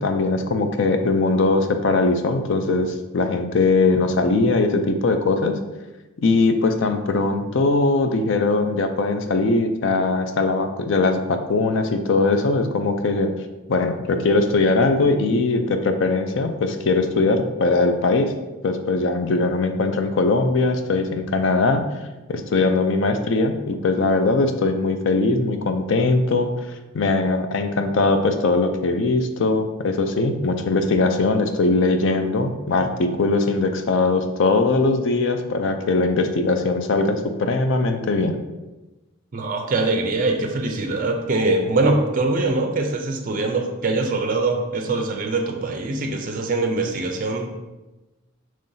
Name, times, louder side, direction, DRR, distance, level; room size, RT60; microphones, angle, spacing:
voice 1, 0.0-5.6 6.2-13.3 13.7-18.3 18.6-21.8 22.3-26.5 26.9-38.4, left 3 dB, 60° left, 7 dB, 0.4 m, -20 dB
voice 2, 39.3-47.5, right 2 dB, 40° right, 4 dB, 0.5 m, -23 dB
5.4 x 3.1 x 2.7 m, 1.1 s
head